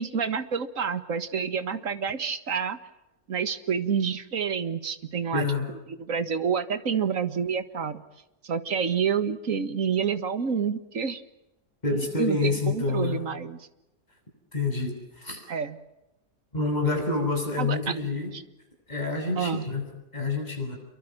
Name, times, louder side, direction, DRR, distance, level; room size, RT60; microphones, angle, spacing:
voice 1, 0.0-2.8 3.3-5.5 5.9-8.0 8.4-11.2 12.2-13.7 15.5-15.8 17.6-18.0 18.3-18.4 19.4-19.7, right 6 dB, 55° right, 12 dB, 1.9 m, -28 dB
voice 2, 5.3-5.7 11.8-13.2 14.5-15.4 16.5-18.3 18.9-19.9 20.1-20.8, left 3 dB, 25° left, 2 dB, 7.8 m, -27 dB
28.0 x 23.5 x 7.6 m, 0.93 s
omnidirectional pair, 1.8 m